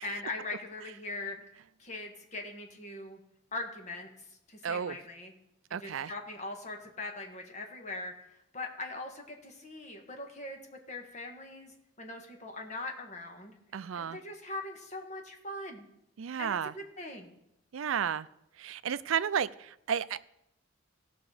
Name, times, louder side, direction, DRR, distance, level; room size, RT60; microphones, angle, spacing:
voice 1, 0.0-1.4 1.8-3.2 3.5-5.3 5.7-13.6 13.9-15.9 16.4-17.3, left 2 dB, 35° left, 3 dB, 1.5 m, -41 dB
voice 2, 4.6-5.0 5.7-6.1 13.7-14.2 16.2-16.7 17.7-18.3 18.6-20.3, right 8 dB, 90° right, 16 dB, 0.4 m, -32 dB
16.5 x 6.0 x 4.9 m, 0.81 s
head